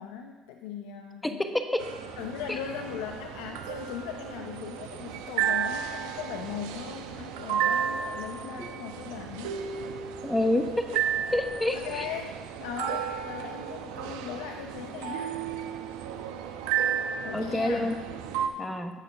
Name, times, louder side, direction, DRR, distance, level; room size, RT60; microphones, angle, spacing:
voice 1, 0.0-1.4 2.2-9.6 11.7-15.4 17.2-17.9, left 8 dB, 85° left, 5 dB, 0.6 m, -39 dB
sound 1, 1.8-18.5, right 8 dB, 90° right, 0.8 m, -33 dB
voice 2, 10.2-10.6 11.3-12.0 17.3-17.9 18.6-18.9, left 1 dB, 10° left, 7 dB, 1.0 m, -27 dB
10.5 x 6.8 x 5.9 m, 1.4 s
supercardioid pair, 90°, 0 cm